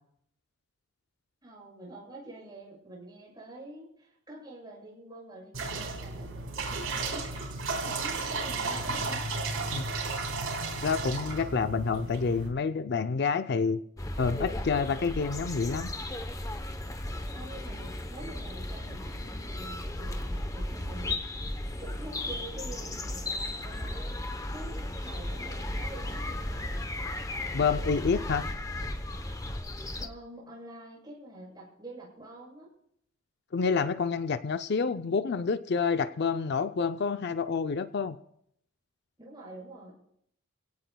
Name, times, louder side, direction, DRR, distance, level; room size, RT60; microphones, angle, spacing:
voice 1, 1.4-9.3 17.3-21.4 21.8-24.2 24.5-26.7 30.0-32.7 39.2-39.9, right 1 dB, 20° right, -4 dB, 7.1 m, -47 dB
sound 1, 5.5-12.5, right 3 dB, 75° right, 4.7 m, -33 dB
voice 2, 10.8-13.8 14.2-15.9 27.5-28.5 33.5-38.2, left 5 dB, 50° left, 11 dB, 0.5 m, -28 dB
sound 2, 14.0-30.1, left 1 dB, 15° left, 0.8 m, -35 dB
28.5 x 17.0 x 2.3 m, 0.71 s
head